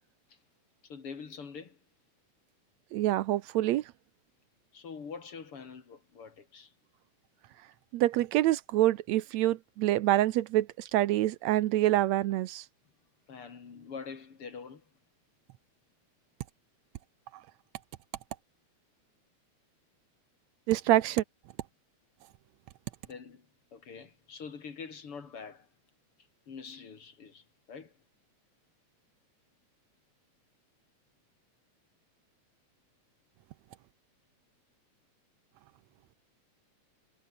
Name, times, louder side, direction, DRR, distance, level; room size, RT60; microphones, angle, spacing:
voice 1, 0.8-1.8 4.7-6.7 13.3-14.8 23.1-25.7 26.5-27.9, left 5 dB, 50° left, 3.5 m, -45 dB
voice 2, 2.9-3.8 7.9-12.7 20.7-21.2, right 15 dB, 75° right, 1.9 m, -26 dB
omnidirectional pair, 3.3 m